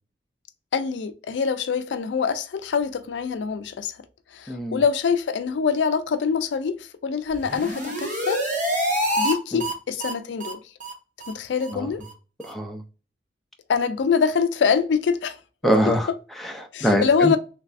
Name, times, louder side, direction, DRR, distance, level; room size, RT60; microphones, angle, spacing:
voice 1, 0.7-4.0 4.3-8.5 9.2-10.6 11.3-12.0 13.7-15.4 16.7-17.4, left 6 dB, 70° left, 0.4 m, -24 dB
voice 2, 4.5-4.8 9.5-9.6 11.7-11.9 12.4-12.8 15.6-17.4, equal, ahead, 0.5 m, -24 dB
sound 1, 7.3-9.3 9.6-9.7 10.0-10.1 10.4-10.5 10.8-10.9 11.2-11.3 11.6-11.7 12.0-12.1 12.4-12.5, equal, 45° right, 0.9 m, -26 dB
3.4 x 3.2 x 2.5 m
head